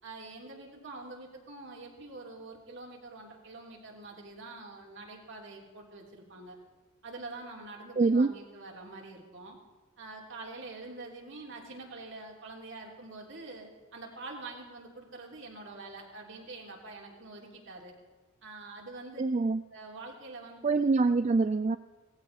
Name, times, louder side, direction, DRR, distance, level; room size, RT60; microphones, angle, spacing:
voice 1, 0.0-6.6 7.0-9.6 10.0-17.9 18.4-19.2 19.7-20.8, right 3 dB, 60° right, 0 dB, 3.4 m, -45 dB
voice 2, 8.0-8.3 19.2-19.6 20.6-21.8, right 3 dB, 30° right, 11 dB, 0.4 m, -25 dB
18.5 x 15.5 x 4.3 m, 1.3 s
head